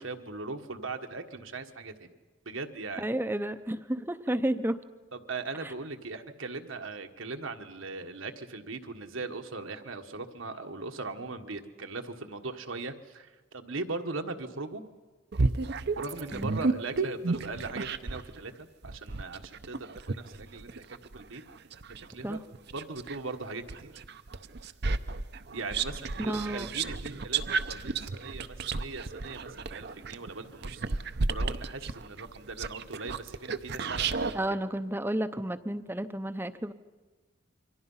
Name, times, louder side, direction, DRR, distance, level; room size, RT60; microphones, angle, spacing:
voice 1, 0.0-2.1 2.4-3.0 5.1-14.8 16.0-21.4 22.1-22.4 22.7-23.9 25.5-34.4, right 3 dB, 75° right, 6 dB, 1.5 m, -39 dB
voice 2, 3.0-4.8 5.6-5.7 16.3-16.6 22.2-22.4 26.2-26.7 34.3-36.7, right 1 dB, 10° right, 11 dB, 0.7 m, -31 dB
sound 1, 15.3-18.3 18.8-23.2 23.7-34.4, right 4 dB, 55° right, 0.7 m, -32 dB
28.0 x 24.0 x 5.6 m, 1.3 s
head